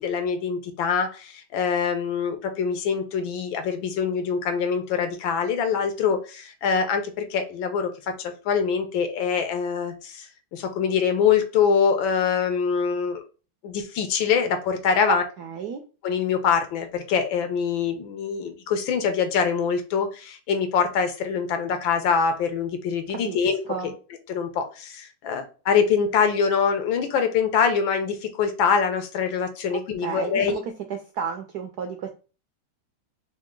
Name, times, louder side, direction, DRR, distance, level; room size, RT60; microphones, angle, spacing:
voice 1, 0.0-7.9 8.2-13.2 13.6-15.2 16.0-23.6 24.3-30.6, left 6 dB, 75° left, 7 dB, 1.4 m, -24 dB
voice 2, 15.1-15.8 23.1-23.4 23.7-23.9 29.7-30.6 30.9-32.1, right 7 dB, 75° right, 4 dB, 0.9 m, -32 dB
3.9 x 3.2 x 3.7 m, 0.35 s
omnidirectional pair, 2.3 m